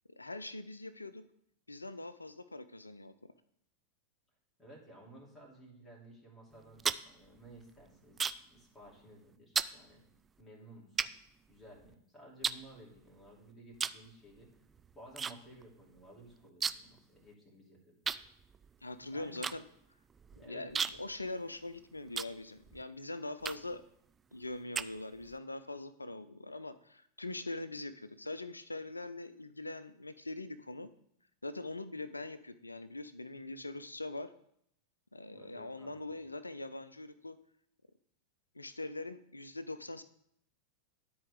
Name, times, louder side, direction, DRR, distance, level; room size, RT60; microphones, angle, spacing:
voice 1, 0.2-1.2 1.7-3.3 18.8-19.6 20.5-23.8 24.3-30.9 31.4-34.3 35.1-37.4 38.5-40.0, left 2 dB, 80° left, 14 dB, 0.5 m, -42 dB
voice 2, 4.6-10.0 10.4-11.2 11.5-14.5 14.9-17.9 19.1-19.4 20.4-20.7 35.3-36.1, right 1 dB, 10° left, -4 dB, 3.0 m, -55 dB
sound 1, 6.5-8.6 8.9-9.2 9.5-9.8 10.4-10.5 11.0-11.9 12.4-13.3 13.7-14.1 14.3-15.3 15.6-15.7 16.0-17.0 17.3-17.4 18.0-22.8 23.4-23.8 24.3-25.4, right 6 dB, 20° right, 0.3 m, -37 dB
12.5 x 4.4 x 3.6 m, 0.71 s
figure-of-eight pair, 90°, 0 cm